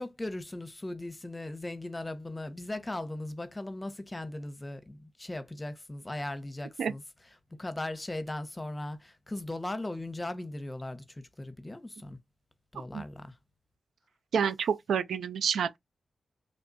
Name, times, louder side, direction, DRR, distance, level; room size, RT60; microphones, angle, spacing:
voice 1, 0.0-7.0 7.5-12.2 12.7-13.4, left 1 dB, 20° left, 0.8 m, -38 dB
voice 2, 14.3-15.8, right 7 dB, 85° right, 0.3 m, -28 dB
3.3 x 2.2 x 3.9 m
cardioid pair, 55°, 0 cm